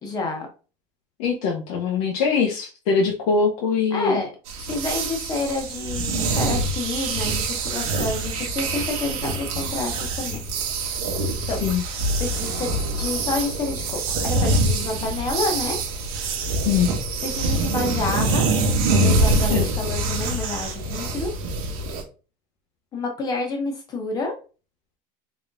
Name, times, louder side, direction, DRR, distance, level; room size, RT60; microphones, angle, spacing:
voice 1, 0.0-0.5 3.9-4.3 4.7-10.4 11.5-11.6 12.2-15.8 17.2-18.4 18.9-21.3 22.9-24.3, left 3 dB, 20° left, 2 dB, 0.7 m, -29 dB
voice 2, 1.2-4.2 11.6-11.8 16.7-16.9 19.5-19.6, left 5 dB, 85° left, -2 dB, 0.9 m, -22 dB
sound 1, 4.5-22.0, right 2 dB, 80° right, 1.0 m, -25 dB
3.8 x 3.4 x 2.5 m, 0.34 s
cardioid pair, 180°, 18 cm